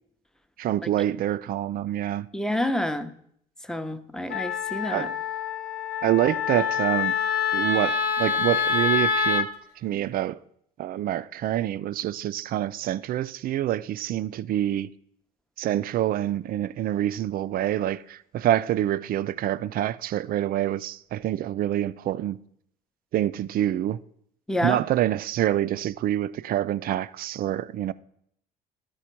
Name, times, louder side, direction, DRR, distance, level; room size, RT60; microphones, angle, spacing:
voice 1, 0.6-2.3 4.9-5.1 6.0-7.1 7.5-9.5 9.8-10.4 10.8-14.9 15.6-22.4 23.1-24.0 24.6-27.9, right 12 dB, 50° right, 0.4 m, -26 dB
voice 2, 2.3-3.1 3.6-5.1 24.5-24.8, left 1 dB, 5° left, 0.6 m, -28 dB
Wind instrument woodwind instrument, 4.3-9.5, left 6 dB, 55° left, 0.7 m, -26 dB
12.0 x 4.2 x 4.4 m
hypercardioid pair, 65°, 19 cm